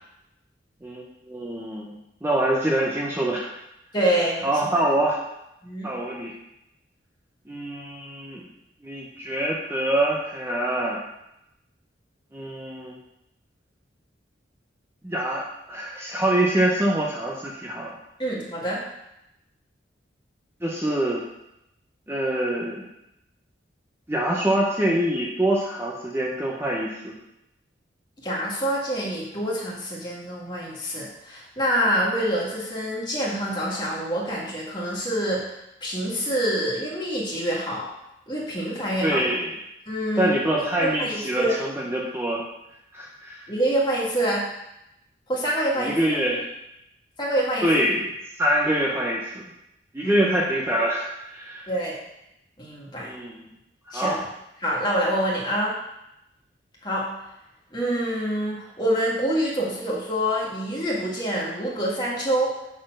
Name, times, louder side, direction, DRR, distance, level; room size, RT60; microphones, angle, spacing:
voice 1, 0.8-3.5 4.4-5.2 5.8-6.3 7.5-8.4 8.8-11.0 12.3-12.9 15.0-17.9 20.6-21.2 22.1-22.9 24.1-27.2 39.0-39.6 40.2-42.4 42.9-43.5 45.8-46.5 47.6-48.1 48.4-49.3 49.9-51.7 53.0-53.4 53.9-54.2, right 1 dB, 15° right, -3 dB, 0.8 m, -25 dB
voice 2, 3.9-4.5 5.6-5.9 18.2-18.8 28.2-35.5 35.8-37.9 38.3-39.2 39.9-41.5 43.5-44.5 45.3-45.9 47.2-47.7 50.0-50.3 51.7-51.9 52.6-53.1 53.9-54.2 54.6-55.7 56.8-57.1 57.7-62.6, right 1 dB, 25° left, -4 dB, 1.9 m, -26 dB
6.3 x 4.3 x 6.3 m, 0.85 s
head